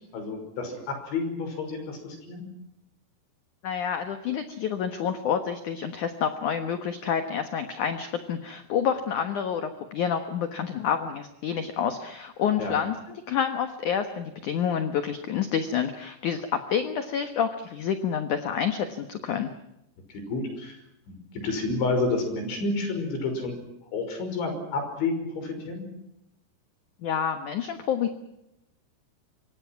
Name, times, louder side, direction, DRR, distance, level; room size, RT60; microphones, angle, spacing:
voice 1, 0.1-2.5 12.6-12.8 20.1-20.8 21.1-23.5 23.9-25.9, left 3 dB, 85° left, 6 dB, 8.1 m, -30 dB
voice 2, 3.6-19.5 27.0-28.2, left 8 dB, 60° left, 8 dB, 2.2 m, -28 dB
27.0 x 24.5 x 6.0 m, 0.85 s
omnidirectional pair, 5.2 m